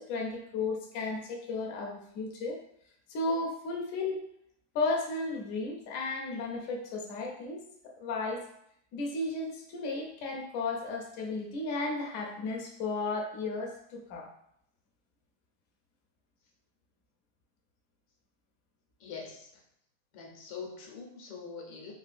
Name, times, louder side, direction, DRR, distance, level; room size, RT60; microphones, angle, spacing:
voice 1, 0.0-2.6 3.1-4.2 4.7-8.4 8.9-14.3, left 3 dB, 65° left, 0 dB, 0.8 m, -34 dB
voice 2, 19.0-19.5 20.1-21.9, left 5 dB, 80° left, 0 dB, 1.4 m, -43 dB
3.7 x 2.4 x 2.4 m, 0.72 s
omnidirectional pair, 1.8 m